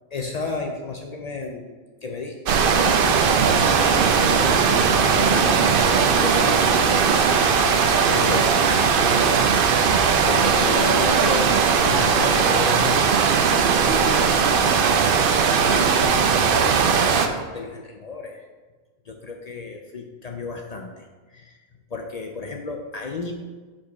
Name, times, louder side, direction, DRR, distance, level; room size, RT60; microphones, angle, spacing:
voice 1, 0.1-1.8 2.0-3.4 3.8-7.3 8.1-8.7 10.3-12.9 13.5-14.2 15.6-18.5 19.1-21.6 21.9-23.3, left 3 dB, 60° left, 2 dB, 0.4 m, -32 dB
sound 1, 2.5-17.3, right 6 dB, 60° right, 0.6 m, -19 dB
5.1 x 4.3 x 5.7 m, 1.3 s
omnidirectional pair, 1.3 m